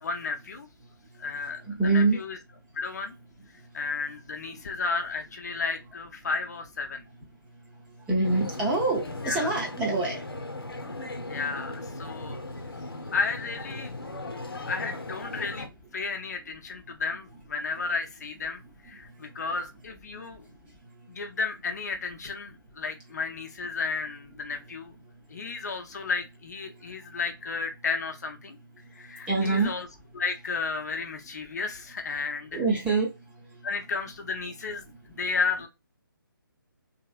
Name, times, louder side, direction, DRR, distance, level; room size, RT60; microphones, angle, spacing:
voice 1, 0.0-0.7 1.2-1.6 1.9-2.4 2.7-3.1 3.7-7.0 9.2-9.5 11.3-12.4 13.1-14.0 14.7-20.5 21.1-24.9 25.3-28.6 28.9-29.8 30.1-32.6 33.6-34.8 35.1-35.7, left 4 dB, 45° left, 0.6 m, -33 dB
voice 2, 1.6-2.2 8.1-10.2 29.3-29.8 32.5-33.1 33.6-33.7, right 3 dB, 10° right, 0.7 m, -25 dB
sound 1, 8.2-15.7, left 2 dB, 85° left, 0.8 m, -37 dB
2.9 x 2.8 x 2.4 m
figure-of-eight pair, 150°, 12 cm